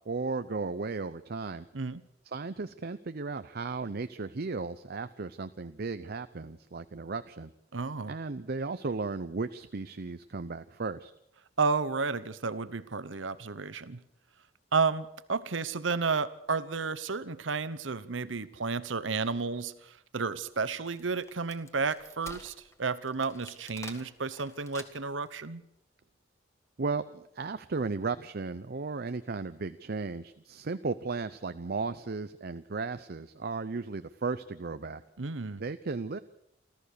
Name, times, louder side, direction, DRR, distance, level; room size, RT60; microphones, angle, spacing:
voice 1, 0.1-1.6 2.2-7.5 8.1-11.1 26.8-35.0 35.6-36.2, right 4 dB, 55° right, 12 dB, 0.7 m, -35 dB
voice 2, 7.7-8.1 11.6-14.0 14.7-22.5 22.8-25.6 35.2-35.6, right 4 dB, 90° right, 15 dB, 1.0 m, -32 dB
Wood, 20.5-25.3, left 2 dB, 15° left, 1.8 m, -50 dB
28.5 x 14.0 x 6.7 m, 0.79 s
head